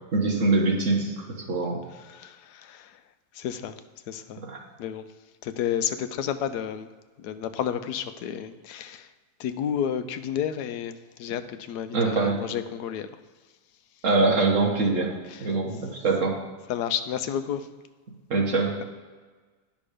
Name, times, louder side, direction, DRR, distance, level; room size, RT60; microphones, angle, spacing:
voice 1, 0.1-1.8 4.4-4.6 11.9-12.4 14.0-15.1 15.4-16.4 18.3-18.8, right 3 dB, 50° right, 0 dB, 1.7 m, -23 dB
voice 2, 2.1-2.9 3.4-3.7 4.1-4.4 4.8-5.1 5.4-6.9 7.2-9.1 9.4-10.9 11.2-13.1 15.3-15.5 16.7-17.7, left 9 dB, 85° left, 11 dB, 1.1 m, -31 dB
10.5 x 6.1 x 5.0 m, 1.4 s
omnidirectional pair, 1.7 m